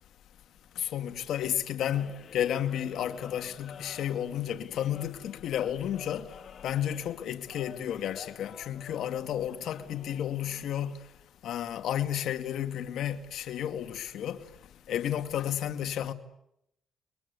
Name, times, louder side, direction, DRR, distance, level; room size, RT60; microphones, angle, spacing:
voice 1, 0.8-6.2 6.6-11.0 11.4-14.4 14.9-16.1, left 10 dB, 75° left, 2.4 m, -32 dB
sound 1, 1.9-10.9, left 8 dB, 60° left, 2.0 m, -50 dB
30.0 x 23.0 x 8.5 m
cardioid pair, 90°, 0 cm